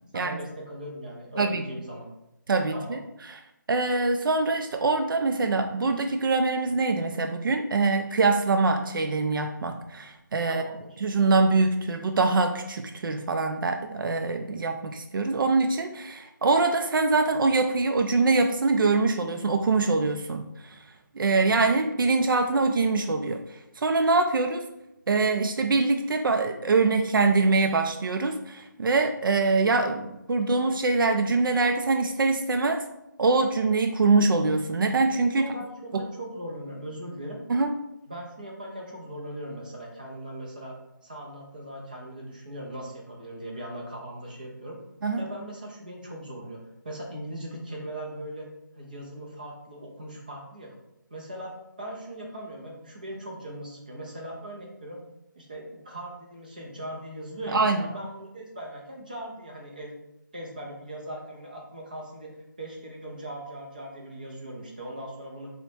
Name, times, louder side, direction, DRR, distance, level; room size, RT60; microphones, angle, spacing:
voice 1, 0.1-2.1 2.7-3.0 10.5-11.0 35.4-37.4 38.1-40.8 41.0-44.8 45.2-48.5 48.7-50.8 51.1-55.0 55.4-59.9 60.3-62.3 62.6-65.5, right 1 dB, 25° right, -1 dB, 0.4 m, -39 dB
voice 2, 2.5-3.0 3.3-3.4 3.7-10.6 11.0-20.8 21.1-24.7 25.1-32.8 33.2-35.5 35.9-36.0 37.5-37.7 45.0-45.2 57.5-57.9, right 3 dB, 90° right, 5 dB, 0.4 m, -24 dB
4.4 x 2.1 x 2.7 m, 0.86 s
hypercardioid pair, 175°, 11 cm